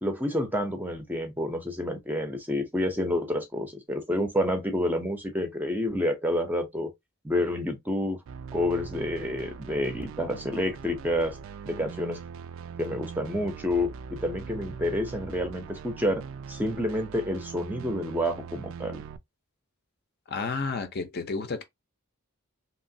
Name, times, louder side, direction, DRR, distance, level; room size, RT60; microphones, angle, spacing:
voice 1, 0.0-6.9 7.2-8.2 8.5-11.4 11.7-12.2 12.8-16.2 16.5-19.0, left 1 dB, 10° right, 0.5 m, -29 dB
sound 1, 8.3-19.2, right 6 dB, 60° right, 0.3 m, -41 dB
voice 2, 20.3-21.6, left 4 dB, 45° left, 0.5 m, -31 dB
3.0 x 2.9 x 2.6 m
head